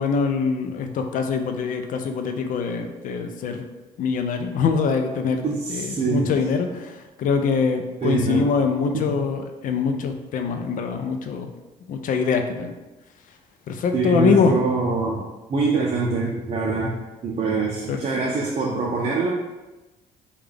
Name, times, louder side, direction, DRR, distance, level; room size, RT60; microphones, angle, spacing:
voice 1, 0.0-3.6 4.0-11.5 11.9-12.7 13.7-14.6 17.9-18.0, left 5 dB, 60° left, 6 dB, 0.4 m, -23 dB
voice 2, 5.4-6.4 8.0-8.5 8.9-9.2 13.9-19.3, right 4 dB, 45° right, -3 dB, 0.6 m, -24 dB
3.2 x 2.3 x 3.6 m, 1.1 s
cardioid pair, 80°, 16 cm